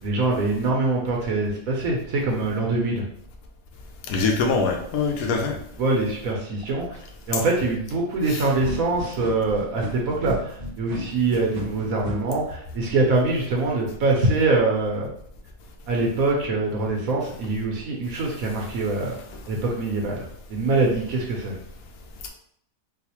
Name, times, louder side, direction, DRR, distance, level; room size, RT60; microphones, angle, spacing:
voice 1, 0.0-3.0 5.8-7.0 7.3-15.1 15.9-19.1 19.5-21.6, right 3 dB, 80° right, -1 dB, 1.1 m, -24 dB
voice 2, 4.1-5.6 8.3-8.4, left 4 dB, 85° left, 2 dB, 1.1 m, -23 dB
sound 1, 8.6-12.1, right 1 dB, 45° right, 0.9 m, -33 dB
4.0 x 2.4 x 2.8 m, 0.67 s
omnidirectional pair, 1.5 m